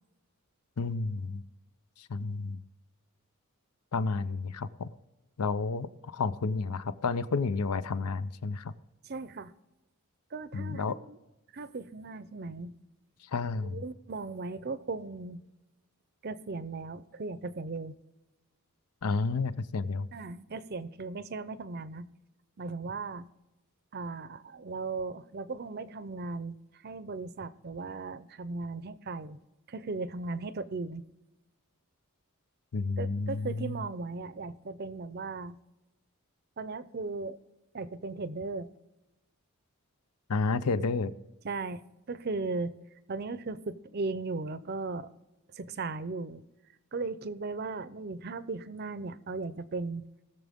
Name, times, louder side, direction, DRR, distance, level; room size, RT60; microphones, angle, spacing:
voice 1, 0.8-1.4 2.0-2.6 3.9-4.9 5.4-8.7 10.5-11.0 13.3-13.8 19.0-20.1 32.7-33.8 40.3-41.1, left 4 dB, 90° left, 15 dB, 0.6 m, -31 dB
voice 2, 9.0-9.5 10.3-11.2 11.5-12.7 13.6-15.4 16.2-18.0 20.1-22.1 22.6-23.3 23.9-26.6 26.8-29.4 29.7-31.1 33.0-35.6 36.6-37.4 37.7-38.7 41.4-41.8 42.1-42.7 43.1-45.1 45.5-46.4 46.9-50.1, right 3 dB, 45° right, 15 dB, 0.6 m, -37 dB
19.5 x 6.9 x 3.6 m, 1.0 s
head